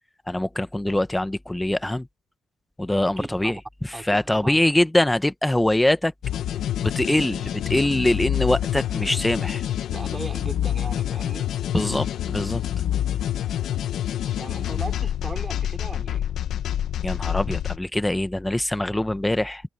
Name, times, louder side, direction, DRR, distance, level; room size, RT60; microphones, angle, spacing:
voice 1, 0.3-2.1 2.8-6.1 6.8-9.6 11.7-12.6 17.0-19.6, left 1 dB, 10° left, 1.2 m, -23 dB
voice 2, 3.2-3.6 3.9-4.6 9.9-11.5 14.4-16.2, right 2 dB, 20° right, 3.7 m, -37 dB
sound 1, 6.2-17.8, left 11 dB, 70° left, 1.4 m, -27 dB
cardioid pair, 90°, 0 cm